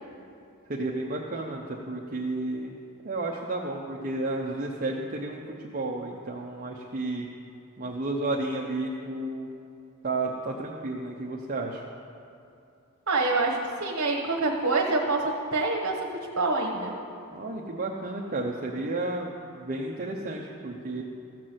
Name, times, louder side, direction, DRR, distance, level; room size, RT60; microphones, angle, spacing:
voice 1, 0.7-2.8 3.0-7.3 7.8-9.5 10.0-11.8 17.3-19.3 19.5-21.0, right 2 dB, 40° right, -1 dB, 0.8 m, -32 dB
voice 2, 13.1-16.1 16.4-16.9, right 3 dB, 65° right, -1 dB, 1.2 m, -26 dB
14.5 x 6.0 x 7.8 m, 2.6 s
head